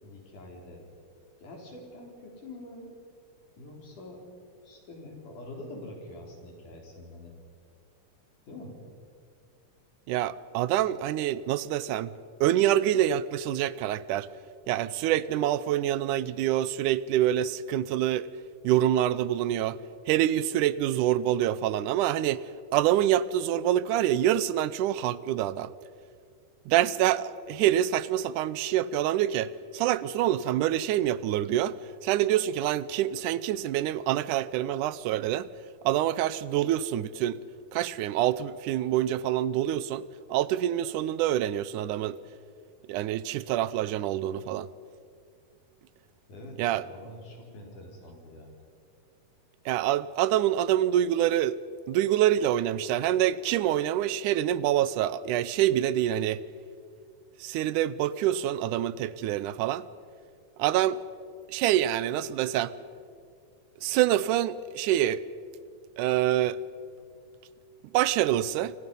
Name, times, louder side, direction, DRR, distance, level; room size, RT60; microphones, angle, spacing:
voice 1, 0.0-0.8 1.4-3.0 3.6-4.3 4.6-7.3 8.5-8.8 46.3-48.5, left 1 dB, 70° left, 1 dB, 5.5 m, -45 dB
voice 2, 10.1-12.2 12.4-14.3 14.7-18.3 18.6-19.8 20.1-22.4 22.7-25.7 26.7-35.5 35.8-37.4 37.7-42.2 42.9-44.7 46.6-46.9 49.7-51.6 51.9-56.4 57.4-59.9 60.6-61.0 61.5-62.7 63.8-65.2 66.0-66.6 67.9-68.8, right 12 dB, 80° right, 17 dB, 2.1 m, -26 dB
28.5 x 26.0 x 5.5 m, 2.3 s
omnidirectional pair, 3.7 m